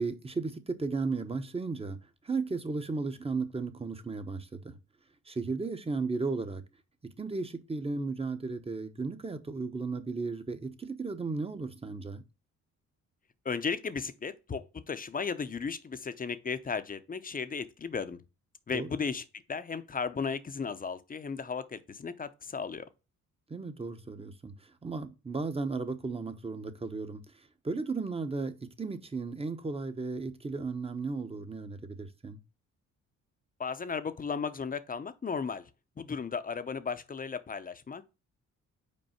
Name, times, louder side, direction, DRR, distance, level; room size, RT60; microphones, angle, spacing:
voice 1, 0.0-2.0 2.2-4.8 5.3-6.6 7.2-12.2 18.7-18.9 23.5-27.2 27.6-32.4, right 4 dB, 20° right, 1.0 m, -35 dB
voice 2, 13.4-18.2 18.7-22.9 33.6-35.7 36.0-38.1, left 5 dB, 30° left, 0.7 m, -35 dB
5.4 x 4.5 x 5.8 m
cardioid pair, 90°, 30 cm